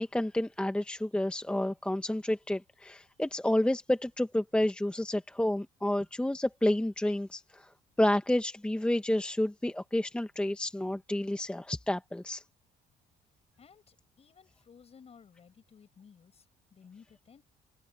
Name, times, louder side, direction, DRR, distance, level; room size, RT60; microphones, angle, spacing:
voice 1, 0.0-7.7 8.0-12.4, left 1 dB, 5° left, 1.0 m, -30 dB
voice 2, 13.6-17.4, left 6 dB, 40° left, 5.4 m, -57 dB
cardioid pair, 110°, 17 cm